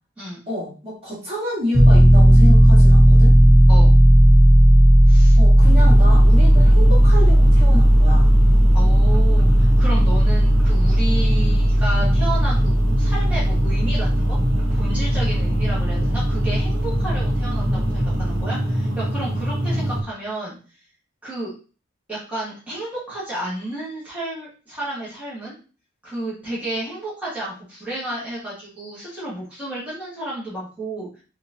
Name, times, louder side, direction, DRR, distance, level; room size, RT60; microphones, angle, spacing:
voice 1, 0.5-3.4 5.3-8.3, left 1 dB, 30° right, -7 dB, 1.6 m, -29 dB
Piano, 1.7-18.4, equal, 10° left, 0.7 m, -14 dB
voice 2, 5.1-5.7 8.7-14.4 14.7-20.6 21.2-21.5 22.1-25.5 26.0-31.2, right 1 dB, 5° right, -9 dB, 1.4 m, -32 dB
sound 1, 5.6-20.0, equal, 80° right, 1.0 m, -25 dB
4.2 x 2.6 x 2.8 m, 0.36 s
head